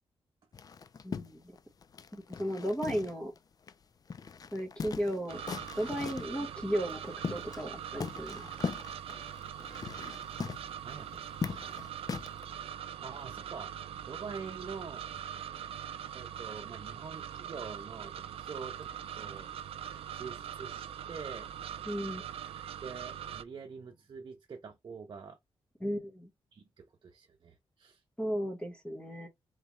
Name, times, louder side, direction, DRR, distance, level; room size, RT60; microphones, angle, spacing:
sound 1, 0.5-3.4 3.7-3.8 4.1-6.4 6.9-7.7 8.0-12.4, left 5 dB, 40° left, 0.4 m, -40 dB
voice 1, 1.0-1.6 2.1-3.3 4.5-5.4 5.7-8.5 21.9-22.2 25.8-26.3 28.2-29.3, equal, 10° left, 1.3 m, -35 dB
sound 2, 5.3-23.4, right 9 dB, 85° right, 0.4 m, -42 dB
voice 2, 10.8-11.8 13.0-13.7 14.0-15.2 16.1-18.9 19.1-21.5 22.4-25.4 26.5-28.0, right 5 dB, 50° right, 0.8 m, -46 dB
4.0 x 3.3 x 3.0 m
cardioid pair, 105°, 10 cm